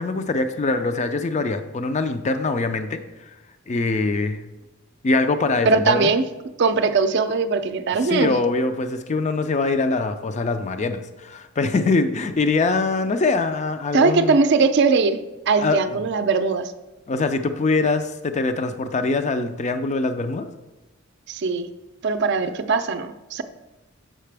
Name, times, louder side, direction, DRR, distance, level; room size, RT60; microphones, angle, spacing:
voice 1, 0.0-3.0 3.7-4.4 5.0-6.1 8.0-14.4 15.6-15.8 17.1-20.5, left 3 dB, 35° left, 9 dB, 0.4 m, -23 dB
voice 2, 5.6-6.2 6.6-8.4 13.9-16.7 21.3-21.7 22.0-23.4, right 4 dB, 55° right, 9 dB, 0.5 m, -20 dB
7.5 x 5.8 x 3.4 m, 1.1 s
head